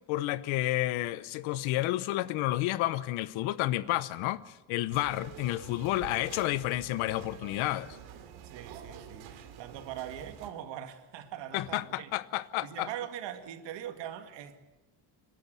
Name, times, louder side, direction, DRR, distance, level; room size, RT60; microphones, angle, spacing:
voice 1, 0.0-4.4 4.7-8.0 11.5-12.9, left 16 dB, 90° left, 1.0 m, -30 dB
sound 1, 4.9-10.5, right 8 dB, 85° right, 2.8 m, -47 dB
voice 2, 8.4-12.1 12.6-14.6, right 10 dB, 65° right, 2.1 m, -41 dB
28.0 x 12.5 x 8.2 m
cardioid pair, 155°, 46 cm